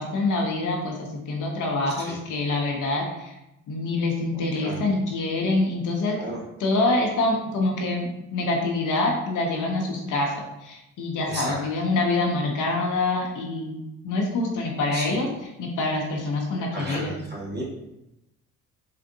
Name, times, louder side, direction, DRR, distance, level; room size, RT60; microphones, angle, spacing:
voice 1, 0.0-3.3 3.7-6.2 6.6-10.3 10.6-15.3 15.6-17.2, left 2 dB, 60° left, 0 dB, 0.8 m, -26 dB
voice 2, 4.3-4.8 6.1-6.4 11.2-11.6 14.9-15.2 16.7-17.7, right 1 dB, 30° right, -5 dB, 1.5 m, -34 dB
3.6 x 2.5 x 2.6 m, 0.89 s
supercardioid pair, 65°, 35 cm